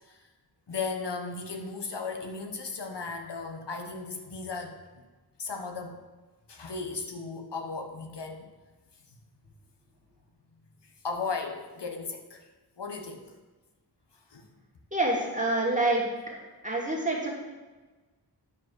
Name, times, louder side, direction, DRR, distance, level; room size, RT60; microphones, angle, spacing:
voice 1, 0.7-4.7 5.4-6.0 6.5-8.4 11.0-12.4 12.8-13.3 14.3-14.5, left 4 dB, 75° left, 5 dB, 1.1 m, -36 dB
voice 2, 14.9-16.4 16.6-17.3, right 2 dB, 20° right, -2 dB, 2.3 m, -27 dB
10.0 x 4.9 x 6.2 m, 1.2 s
wide cardioid pair, 70°, 42 cm